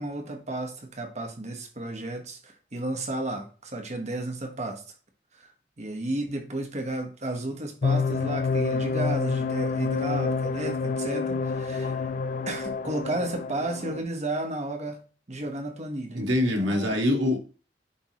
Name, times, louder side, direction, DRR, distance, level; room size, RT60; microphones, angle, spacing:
voice 1, 0.0-4.8 5.4-5.5 5.8-12.1 12.5-15.0 15.3-16.2 16.6-17.0, right 2 dB, 40° right, 4 dB, 1.2 m, -33 dB
sound 1, 7.8-14.0, left 4 dB, 45° left, 0.4 m, -28 dB
voice 2, 16.1-17.4, left 1 dB, 90° right, 1 dB, 1.8 m, -24 dB
9.8 x 3.5 x 3.1 m, 0.36 s
head